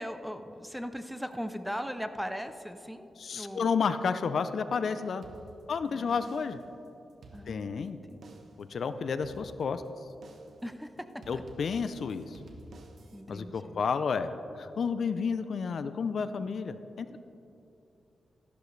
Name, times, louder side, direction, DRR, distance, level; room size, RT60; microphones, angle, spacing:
voice 1, 0.0-3.7 5.9-6.3 7.3-8.2 10.6-11.4 13.1-13.8, equal, ahead, 9 dB, 0.5 m, -39 dB
voice 2, 3.2-5.2 5.7-6.6 7.5-8.0 8.6-9.8 11.3-12.4 13.3-14.3 14.6-17.2, left 5 dB, 65° left, 11 dB, 0.5 m, -31 dB
sound 1, 5.2-5.9 6.2-6.7 7.1-7.9 8.2-8.7 9.2-9.9 10.2-10.7 11.2-13.2, right 1 dB, 65° right, 1.0 m, -51 dB
13.5 x 11.5 x 3.2 m, 2.8 s
wide cardioid pair, 110°, 0 cm